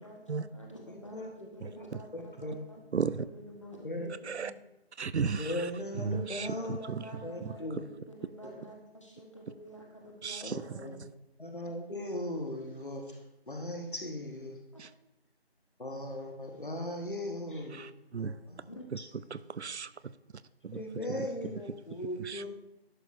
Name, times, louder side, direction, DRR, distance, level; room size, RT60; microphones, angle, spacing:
voice 1, 0.0-4.6 6.1-6.2 6.6-7.9 8.1-11.0 14.7-14.8 18.8-18.9, equal, 30° left, 1.1 m, -49 dB
voice 2, 0.9-1.8 2.1-2.6 3.8-4.2 5.4-6.8 7.2-7.8 8.4-8.5 10.4-11.0 11.4-14.6 15.8-18.6 19.2-19.3 20.7-22.5, left 1 dB, 50° left, 1.3 m, -38 dB
voice 3, 1.6-2.0 2.9-3.3 4.2-4.5 5.0-5.7 6.0-7.1 7.4-7.6 10.2-10.9 14.8-14.9 17.7-18.4 18.9-19.0 19.3-20.1 20.6-20.8 21.1-21.5 22.2-22.4, right 6 dB, 85° right, 0.5 m, -35 dB
11.0 x 6.3 x 2.6 m
figure-of-eight pair, 170°, 33 cm